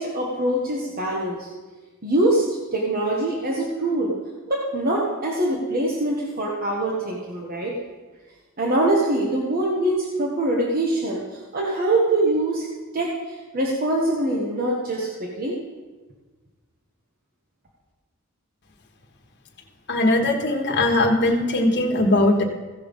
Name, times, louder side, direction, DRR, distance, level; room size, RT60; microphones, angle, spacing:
voice 1, 0.0-1.5 2.0-4.1 4.5-7.8 8.6-12.7 12.9-15.6, right 1 dB, 45° right, -2 dB, 1.2 m, -24 dB
voice 2, 19.9-22.4, left 1 dB, 55° left, 2 dB, 1.3 m, -20 dB
15.5 x 5.7 x 5.3 m, 1.3 s
head